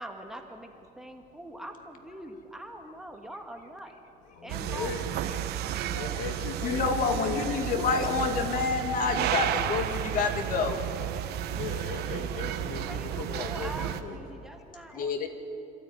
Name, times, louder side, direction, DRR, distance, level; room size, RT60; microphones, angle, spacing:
voice 1, 0.0-3.9 4.4-4.9 5.9-6.4 12.8-15.3, right 1 dB, 5° right, 3 dB, 1.7 m, -43 dB
voice 2, 4.4-5.0 5.9-7.4 7.8-8.3 11.5-13.7 14.0-14.1, left 6 dB, 85° left, 5 dB, 2.5 m, -37 dB
sound 1, 4.5-14.0, right 11 dB, 60° right, 1.3 m, -32 dB
voice 3, 6.6-10.8 14.9-15.3, left 5 dB, 45° left, 6 dB, 2.4 m, -28 dB
27.0 x 13.5 x 9.5 m, 2.8 s
cardioid pair, 140°, 19 cm